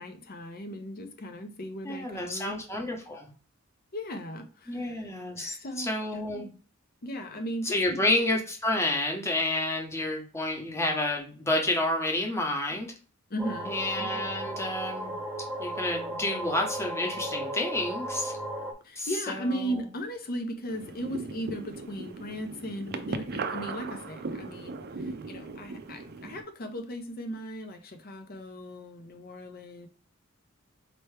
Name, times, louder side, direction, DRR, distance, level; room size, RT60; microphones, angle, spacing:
voice 1, 0.0-2.6 3.9-5.1 5.4-6.2 7.0-8.1 13.3-13.7 18.8-29.9, equal, 45° left, 7 dB, 0.7 m, -37 dB
voice 2, 1.8-3.3 4.7-6.5 7.6-12.9 13.7-15.1 15.6-18.3 19.0-19.8, left 1 dB, 15° left, 1 dB, 1.0 m, -30 dB
sound 1, 13.4-18.7, right 1 dB, 10° right, 0.7 m, -35 dB
sound 2, 20.7-26.4, right 4 dB, 50° right, 0.5 m, -38 dB
4.4 x 3.0 x 3.3 m, 0.37 s
head